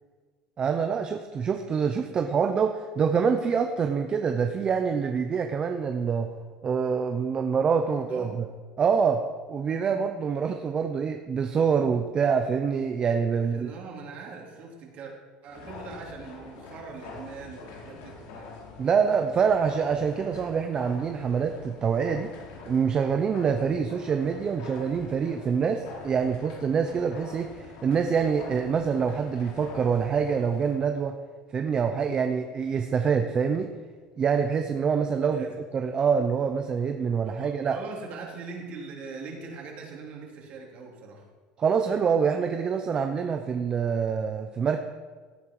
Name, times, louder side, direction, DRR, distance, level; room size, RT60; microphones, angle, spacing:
voice 1, 0.6-6.3 6.6-8.4 8.8-9.2 9.5-13.7 18.8-22.3 22.7-31.2 31.5-33.7 34.2-35.4 35.7-37.8 41.6-44.8, right 6 dB, 30° right, 6 dB, 0.9 m, -25 dB
voice 2, 7.9-8.4 13.4-15.1 15.4-18.5 35.3-35.5 37.3-41.3, right 4 dB, 50° right, 0 dB, 3.6 m, -41 dB
sound 1, 15.5-30.8, left 3 dB, 75° left, 3.0 m, -45 dB
16.5 x 9.1 x 4.9 m, 1.5 s
cardioid pair, 130°, 3 cm